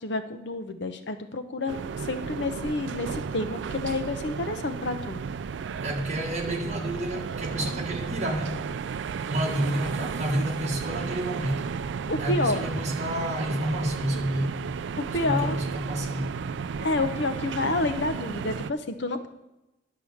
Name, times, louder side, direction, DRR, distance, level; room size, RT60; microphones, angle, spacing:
voice 1, 0.0-5.2 12.1-12.6 15.0-15.6 16.8-19.3, left 2 dB, 65° left, 0.7 m, -29 dB
sound 1, 1.7-18.7, right 6 dB, 70° right, 0.3 m, -34 dB
voice 2, 5.8-8.6 9.3-11.7 12.2-14.6 15.2-16.4, right 1 dB, 35° right, 1.5 m, -29 dB
10.5 x 4.8 x 7.0 m
head